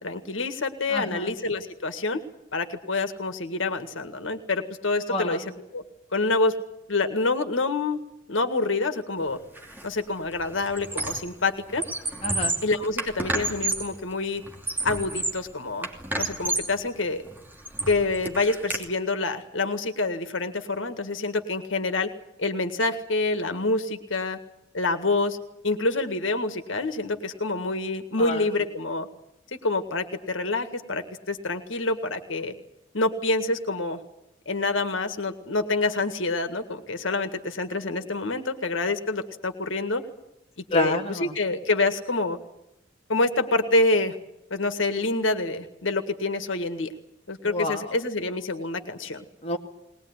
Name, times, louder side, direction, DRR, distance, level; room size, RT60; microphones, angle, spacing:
voice 1, 0.0-2.2 2.5-5.4 5.7-5.8 6.1-6.6 6.9-8.0 8.3-9.4 9.8-11.8 12.6-14.4 14.8-15.9 16.2-17.2 17.9-22.1 22.4-24.4 24.7-25.4 25.6-29.1 29.5-32.5 32.9-34.0 34.5-40.1 40.6-42.4 43.1-44.1 44.5-46.9 47.3-49.2, left 2 dB, 85° left, 9 dB, 1.8 m, -27 dB
voice 2, 0.9-1.3 5.1-5.5 12.2-12.6 28.2-28.5 40.7-41.4 47.4-47.9 49.4-49.6, left 2 dB, 35° left, 2 dB, 2.1 m, -29 dB
Squeak, 9.6-9.8 10.2-11.4 11.7-14.0 14.4-15.5 15.8-16.8 17.3-18.8, right 2 dB, 10° right, 2.8 m, -30 dB
21.0 x 20.0 x 9.7 m, 0.86 s
head